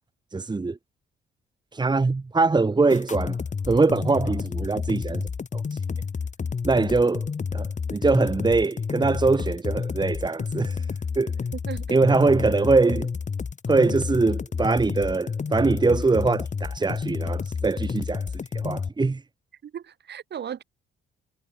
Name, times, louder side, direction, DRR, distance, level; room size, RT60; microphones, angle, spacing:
voice 1, 0.3-0.8 1.7-3.4 3.7-5.8 6.6-10.9 11.2-11.3 11.9-13.1 13.7-18.3 18.5-19.2, right 3 dB, 20° right, 1.8 m, -23 dB
sound 1, 2.9-18.9, left 5 dB, 40° left, 5.1 m, -30 dB
voice 2, 11.7-12.0 19.6-20.6, right 9 dB, 60° right, 5.4 m, -36 dB
cardioid pair, 90°, 20 cm